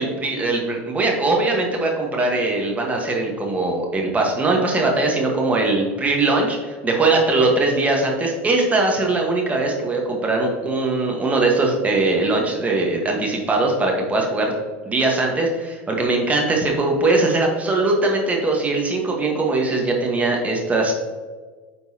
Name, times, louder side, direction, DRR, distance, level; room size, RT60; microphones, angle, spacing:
voice 1, 0.0-14.5 14.8-20.9, right 2 dB, 20° right, 0 dB, 1.3 m, -21 dB
9.9 x 4.0 x 2.8 m, 1.4 s
hypercardioid pair, 90°, 7 cm